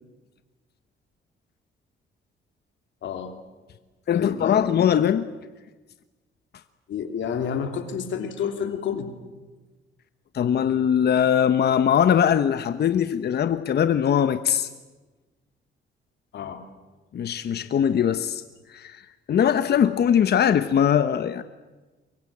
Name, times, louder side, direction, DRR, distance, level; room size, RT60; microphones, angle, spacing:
voice 1, 3.0-3.3 4.1-4.7 6.9-9.1 16.3-16.6, left 7 dB, 70° left, 3.2 m, -29 dB
voice 2, 4.1-5.3 10.3-14.7 17.1-18.4 18.7-19.0 19.3-21.4, left 9 dB, 55° left, 1.0 m, -21 dB
24.0 x 23.0 x 8.6 m
cardioid pair, 90°, 20 cm